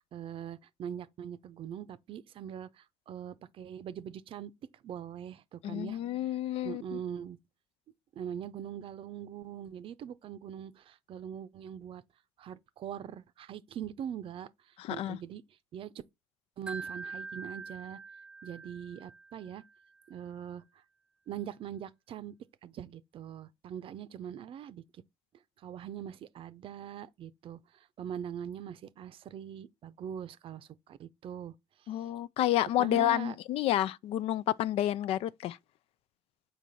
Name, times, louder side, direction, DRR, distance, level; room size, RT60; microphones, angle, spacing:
voice 1, 0.0-4.5 4.8-7.4 8.1-12.0 12.4-15.4 15.7-15.9 16.6-18.0 18.4-19.6 20.1-20.6 21.3-22.3 22.6-25.0 25.6-32.1 32.8-33.3, right 9 dB, 55° right, 0.6 m, -42 dB
voice 2, 5.6-7.0 14.8-15.2 31.9-35.6, left 13 dB, 65° left, 0.4 m, -30 dB
Wind chime, 16.7-19.8, right 4 dB, 10° right, 0.4 m, -44 dB
5.9 x 4.6 x 4.0 m
hypercardioid pair, 60°, 11 cm